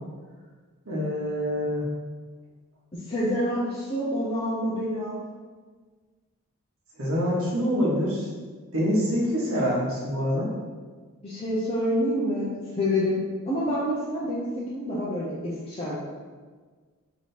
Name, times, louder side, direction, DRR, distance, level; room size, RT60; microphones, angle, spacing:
voice 1, 0.9-1.9 7.0-8.3 8.7-10.5, equal, 70° right, -5 dB, 1.2 m, -25 dB
voice 2, 3.1-5.2 11.2-12.5 12.8-13.2 13.5-16.0, equal, 25° left, -8 dB, 0.6 m, -27 dB
3.3 x 2.9 x 4.3 m, 1.4 s
head